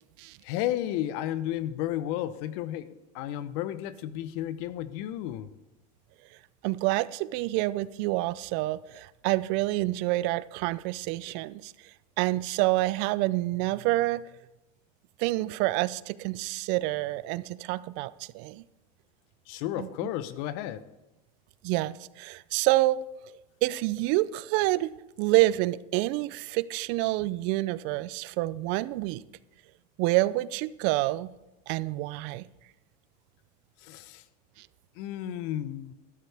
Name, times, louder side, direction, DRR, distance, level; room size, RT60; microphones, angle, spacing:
voice 1, 0.4-5.5 19.5-20.8 33.8-34.2 35.0-35.9, left 12 dB, 65° left, 15 dB, 0.8 m, -33 dB
voice 2, 6.6-11.7 12.2-14.2 15.2-18.6 19.8-19.9 21.6-23.0 23.6-24.9 25.2-29.2 30.0-31.3 31.7-32.5, right 18 dB, 60° right, 18 dB, 0.5 m, -27 dB
12.5 x 12.5 x 3.4 m, 0.98 s
supercardioid pair, 120°, 21 cm